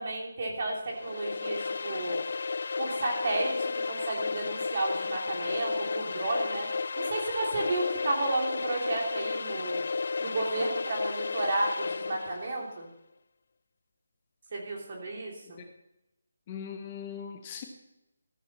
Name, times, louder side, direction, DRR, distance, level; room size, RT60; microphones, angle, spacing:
voice 1, 0.0-2.2 2.8-6.7 7.0-9.9 10.2-12.9 14.5-15.6, right 2 dB, 45° right, -1 dB, 3.1 m, -32 dB
sound 1, 0.9-12.5, left 4 dB, 60° left, 0.3 m, -33 dB
voice 2, 16.5-17.6, left 7 dB, 25° left, 4 dB, 1.1 m, -40 dB
14.0 x 8.7 x 4.2 m, 0.90 s
figure-of-eight pair, 165°, 0 cm